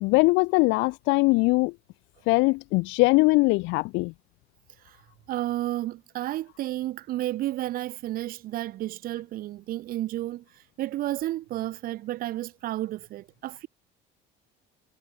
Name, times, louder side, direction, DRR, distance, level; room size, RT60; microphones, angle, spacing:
voice 1, 0.0-1.7 2.3-4.1, left 25 dB, 65° left, 0.6 m, -21 dB
voice 2, 5.3-10.4 10.8-13.7, right 15 dB, 45° right, 1.2 m, -31 dB
cardioid pair, 180°, 21 cm